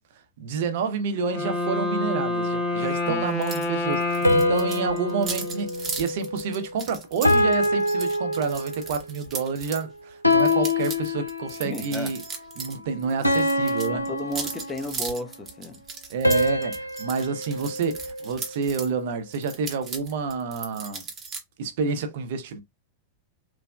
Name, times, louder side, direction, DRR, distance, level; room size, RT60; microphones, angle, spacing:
voice 1, 0.4-12.2 12.6-14.1 16.1-21.0 21.6-22.6, right 5 dB, 55° right, 0.6 m, -29 dB
Wind instrument woodwind instrument, 1.2-6.0, left 2 dB, 40° left, 1.0 m, -28 dB
sound 1, 3.4-3.7 3.9-9.8 10.3-12.8 13.0-18.9 19.3-21.4, right 5 dB, 25° right, 0.8 m, -37 dB
sound 2, 4.2-6.7 7.2-9.0 10.2-11.8 13.2-15.1 16.2-18.6, left 1 dB, 85° left, 0.3 m, -25 dB
voice 2, 11.6-12.1 13.9-15.8, left 1 dB, 15° left, 0.5 m, -33 dB
3.2 x 2.1 x 2.3 m
figure-of-eight pair, 90°, 0 cm